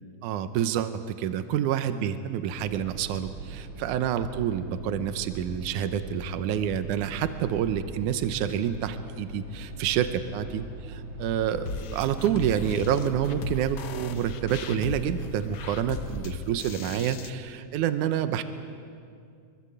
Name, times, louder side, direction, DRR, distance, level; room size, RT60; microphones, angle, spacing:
voice 1, 0.2-18.4, right 9 dB, 80° right, 10 dB, 2.3 m, -28 dB
sound 1, 2.5-16.2, right 2 dB, 50° right, 3.6 m, -40 dB
sound 2, 11.7-17.3, left 5 dB, 75° left, 1.1 m, -37 dB
25.5 x 22.5 x 7.9 m, 2.3 s
omnidirectional pair, 3.7 m